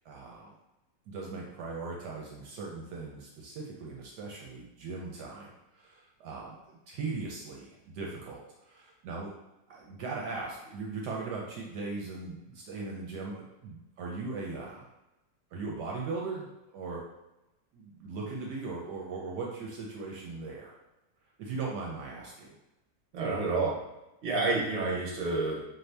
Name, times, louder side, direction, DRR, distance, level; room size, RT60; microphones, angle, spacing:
voice 1, 0.0-0.5 1.1-6.6 6.9-9.3 9.7-14.9 15.5-16.5 16.7-17.0 17.7-20.8 21.4-22.6, right 4 dB, 70° right, -2 dB, 1.2 m, -39 dB
voice 2, 23.1-23.8 24.2-25.6, right 3 dB, 50° right, -2 dB, 1.0 m, -29 dB
4.2 x 2.7 x 3.3 m, 0.96 s
omnidirectional pair, 1.9 m